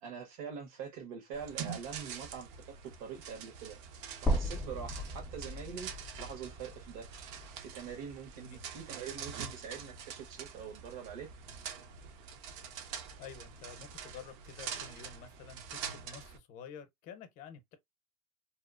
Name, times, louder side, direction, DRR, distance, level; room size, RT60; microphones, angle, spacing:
voice 1, 0.0-3.8 4.2-5.9 6.2-7.1 7.6-11.3, right 7 dB, 75° right, 1.3 m, -44 dB
sound 1, 1.3-16.4, right 7 dB, 60° right, 0.6 m, -45 dB
sound 2, 4.3-8.4 8.8-8.9 10.3-10.4, equal, ahead, 0.5 m, -37 dB
voice 2, 13.2-17.8, left 6 dB, 45° left, 0.7 m, -50 dB
2.7 x 2.1 x 2.4 m
supercardioid pair, 130°, 18 cm